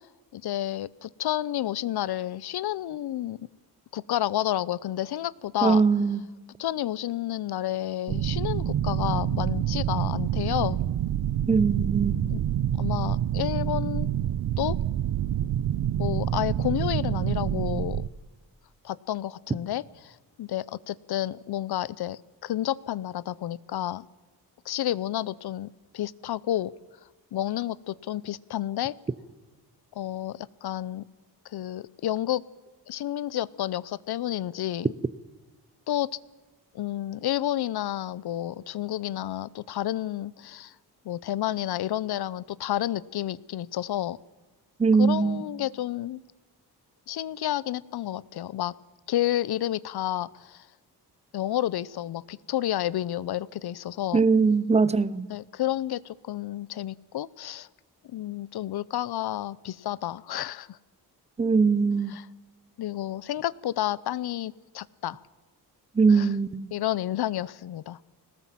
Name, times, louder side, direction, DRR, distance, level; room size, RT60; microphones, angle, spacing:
voice 1, 0.3-3.4 3.9-5.8 6.6-10.8 12.3-12.4 12.7-14.1 14.6-14.8 16.0-18.0 18.8-24.0 24.7-25.7 25.9-26.7 27.3-28.9 30.0-31.0 31.5-32.4 32.9-34.9 35.9-36.1 36.7-40.7 41.0-44.2 45.0-46.2 47.1-48.7 49.1-50.6 51.3-54.2 55.3-57.7 58.1-60.8 62.1-62.3 62.8-65.2 66.1-66.3 66.7-68.0, left 13 dB, 70° left, 0.8 m, -30 dB
voice 2, 5.6-6.2 11.5-12.3 44.8-45.4 54.1-55.3 61.4-62.1 66.0-66.7, right 4 dB, 15° right, 0.6 m, -21 dB
sound 1, 8.1-18.1, right 11 dB, 65° right, 0.7 m, -27 dB
22.0 x 19.0 x 7.5 m
wide cardioid pair, 170°, 39 cm